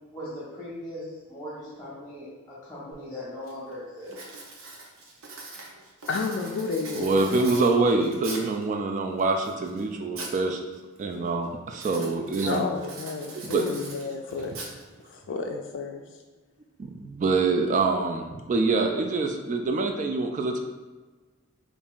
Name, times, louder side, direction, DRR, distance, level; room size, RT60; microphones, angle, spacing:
voice 1, 0.1-4.3, left 1 dB, 5° left, -8 dB, 1.0 m, -39 dB
Writing, 2.9-3.0 3.5-3.7 4.1-8.6 9.2-10.4 10.7-11.1 11.7-15.1, right 3 dB, 85° right, 0.7 m, -42 dB
voice 2, 6.1-7.6 12.4-14.5 15.1-16.0, left 4 dB, 60° left, 3 dB, 0.3 m, -31 dB
voice 3, 6.9-10.6 11.0-12.6 13.4-13.7 16.8-20.6, right 3 dB, 40° right, 3 dB, 0.3 m, -25 dB
5.3 x 2.5 x 2.3 m, 1.3 s
head